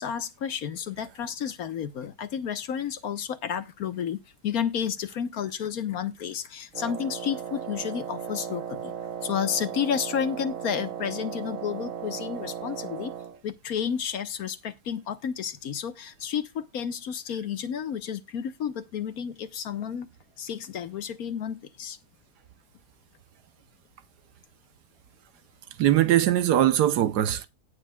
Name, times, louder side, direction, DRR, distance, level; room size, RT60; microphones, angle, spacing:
voice 1, 0.0-8.9 9.2-13.1 13.4-20.1 20.4-22.0, left 8 dB, 65° left, 1.4 m, -31 dB
Wind instrument woodwind instrument, 6.7-13.4, right 8 dB, 60° right, 1.2 m, -36 dB
voice 2, 25.8-27.5, right 12 dB, 85° right, 1.4 m, -21 dB
17.5 x 6.5 x 2.3 m
omnidirectional pair, 1.7 m